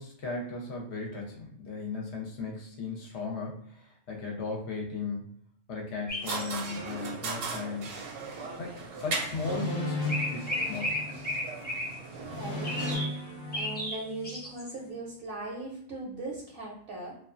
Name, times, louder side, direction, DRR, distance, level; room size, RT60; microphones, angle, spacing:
voice 1, 0.0-5.3 5.7-7.9 8.6-11.2, left 4 dB, 65° left, -1 dB, 0.8 m, -36 dB
sound 1, 6.1-6.6 9.2-9.3 10.1-12.0 12.6-13.2 13.5-14.7, left 1 dB, 15° left, 0.4 m, -34 dB
sound 2, 6.2-13.0, right 4 dB, 75° right, 1.0 m, -38 dB
sound 3, 9.3-11.5 12.2-14.4, left 2 dB, 45° left, 0.9 m, -36 dB
voice 2, 12.3-13.1 13.5-17.2, right 2 dB, 60° right, -3 dB, 0.7 m, -39 dB
2.3 x 2.2 x 2.4 m, 0.67 s
omnidirectional pair, 1.3 m